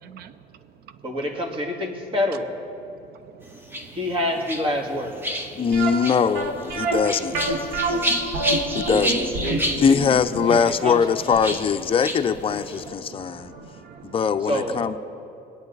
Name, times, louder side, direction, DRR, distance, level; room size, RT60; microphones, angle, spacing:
voice 1, 0.0-0.4 3.0-4.0 5.5-5.7 6.8-6.9 7.6-8.9 12.8-14.4, right 8 dB, 70° right, 13 dB, 0.7 m, -48 dB
voice 2, 1.0-2.5 3.9-5.2 9.4-10.0 10.5-11.0 14.4-14.8, left 1 dB, 30° right, 1 dB, 2.2 m, -27 dB
sound 1, 3.4-12.9, equal, 10° right, 1.2 m, -31 dB
voice 3, 5.6-7.3 8.7-9.3 9.8-13.5 14.0-15.0, left 6 dB, 35° left, 8 dB, 0.6 m, -22 dB
sound 2, 5.7-12.6 12.9-13.0 13.5-13.7 13.9-14.0, right 2 dB, 90° right, 1.8 m, -27 dB
22.5 x 8.8 x 4.0 m, 2.7 s
cardioid pair, 110°, 17 cm